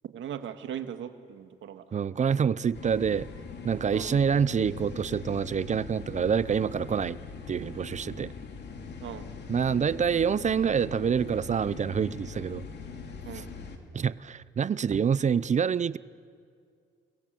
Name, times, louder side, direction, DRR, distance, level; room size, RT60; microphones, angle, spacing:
voice 1, 0.1-1.8 2.3-2.4 3.9-4.1 9.0-9.3 13.2-13.5, right 9 dB, 75° right, 8 dB, 1.9 m, -39 dB
voice 2, 1.9-3.3 3.6-7.2 7.5-8.3 9.5-12.6 13.3-13.4 13.9-16.0, right 7 dB, 35° right, 19 dB, 0.6 m, -26 dB
sound 1, 2.7-13.8, left 4 dB, 60° left, 3.0 m, -42 dB
29.0 x 22.0 x 7.8 m, 2.2 s
cardioid pair, 90°, 20 cm